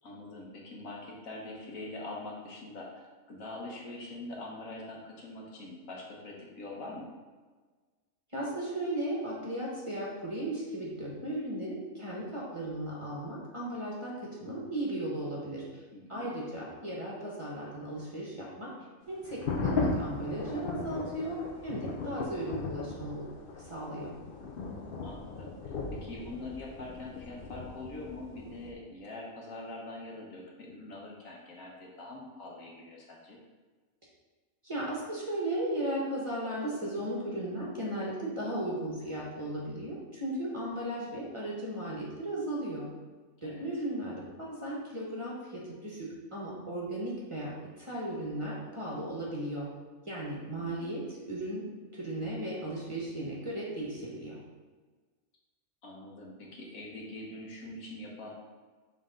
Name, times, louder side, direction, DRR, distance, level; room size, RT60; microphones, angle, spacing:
voice 1, 0.0-7.1 15.9-16.4 25.0-33.4 43.4-43.7 50.5-51.0 55.8-58.3, left 2 dB, 70° left, -2 dB, 1.5 m, -44 dB
voice 2, 8.3-15.8 16.1-18.7 19.1-21.4 21.6-23.3 23.6-24.1 34.6-42.9 43.4-44.2 44.5-47.5 47.8-49.7 50.1-51.6 51.9-54.4, right 1 dB, 25° right, -5 dB, 1.2 m, -36 dB
sound 1, 19.2-28.7, left 3 dB, 55° left, 0.7 m, -37 dB
7.2 x 3.5 x 3.8 m, 1.4 s
omnidirectional pair, 1.5 m